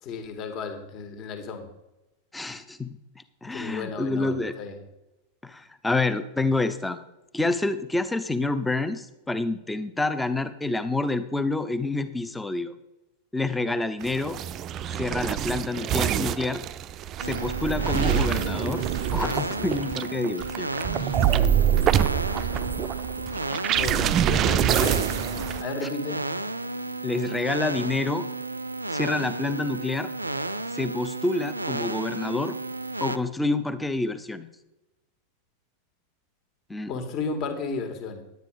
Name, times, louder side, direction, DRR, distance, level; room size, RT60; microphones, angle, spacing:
voice 1, 0.0-1.7 3.5-4.8 23.7-25.0 25.6-26.2 36.9-38.2, left 4 dB, 35° left, 7 dB, 1.8 m, -33 dB
voice 2, 2.3-2.9 3.2-4.5 5.4-7.0 7.3-12.7 13.3-14.4 14.9-16.6 17.2-18.8 19.1-20.7 27.0-28.3 28.9-30.1 30.7-32.6 33.0-34.5 36.7-36.9, left 2 dB, 5° left, 11 dB, 0.8 m, -28 dB
sound 1, 14.0-25.6, right 10 dB, 30° right, 0.5 m, -26 dB
sound 2, 17.2-33.2, right 2 dB, 85° right, 0.5 m, -33 dB
10.5 x 9.3 x 4.9 m, 0.98 s
figure-of-eight pair, 90°, 0 cm